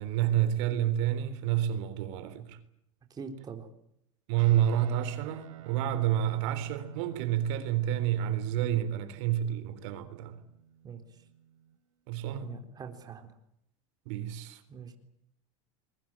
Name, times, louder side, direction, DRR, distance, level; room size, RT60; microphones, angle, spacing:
voice 1, 0.0-2.6 4.3-10.4 12.1-12.5 14.1-14.6, right 11 dB, 65° right, 3.8 m, -29 dB
voice 2, 3.1-3.7 10.8-11.0 12.4-13.3 14.7-14.9, right 6 dB, 25° right, 3.8 m, -43 dB
Guitar, 4.4-12.0, right 9 dB, 80° right, 4.8 m, -52 dB
24.5 x 22.0 x 8.9 m
supercardioid pair, 130°, 17 cm